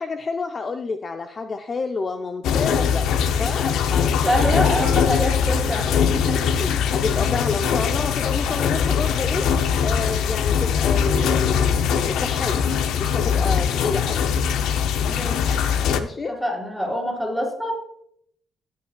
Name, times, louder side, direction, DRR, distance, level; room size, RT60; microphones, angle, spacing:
voice 1, 0.0-3.1 3.4-4.6 6.5-9.5 9.8-12.6 13.0-14.2 15.8-16.4, left 4 dB, 40° left, 7 dB, 0.5 m, -29 dB
sound 1, 2.4-16.0, left 7 dB, 85° left, 0.6 m, -21 dB
voice 2, 4.3-6.4 15.1-15.5 15.9-17.7, equal, ahead, 0 dB, 3.9 m, -26 dB
15.0 x 8.5 x 2.3 m, 0.68 s
cardioid pair, 90°, 0 cm